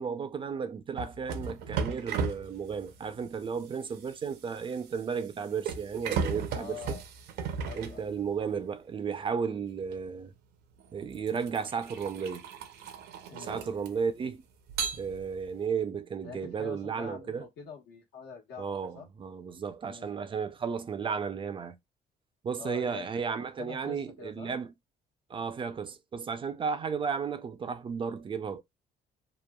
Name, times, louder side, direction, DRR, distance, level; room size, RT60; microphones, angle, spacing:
voice 1, 0.0-7.0 7.7-10.3 10.9-12.5 13.3-14.4 14.9-17.5 18.6-21.8 22.4-24.7 25.3-28.6, right 6 dB, 30° right, 0.4 m, -34 dB
sound 1, 1.0-8.6 9.9-10.1 10.8-14.2 14.7-15.6, right 5 dB, 75° right, 0.6 m, -36 dB
voice 2, 6.5-7.0 7.6-8.1 13.3-13.8 16.2-19.1 19.9-20.2 22.6-23.0 23.6-24.5, left 5 dB, 80° left, 1.2 m, -45 dB
3.0 x 2.3 x 2.2 m
cardioid pair, 110°, 17 cm